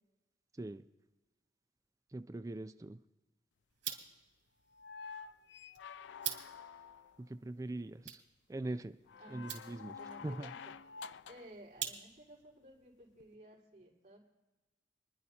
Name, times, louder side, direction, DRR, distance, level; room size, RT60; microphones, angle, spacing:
voice 1, 0.5-0.9 2.1-3.0 7.2-8.2 8.5-9.0 9.3-10.5, right 2 dB, 20° right, 10 dB, 0.3 m, -42 dB
sound 1, 3.7-12.4, right 10 dB, 75° right, 2.9 m, -48 dB
sound 2, 4.7-7.2 9.1-11.6 13.2-13.3, left 6 dB, 75° left, 0.3 m, -49 dB
voice 2, 10.0-10.7 11.3-14.2, right 1 dB, 40° right, -7 dB, 4.3 m, -55 dB
29.0 x 11.0 x 2.8 m, 1.1 s
head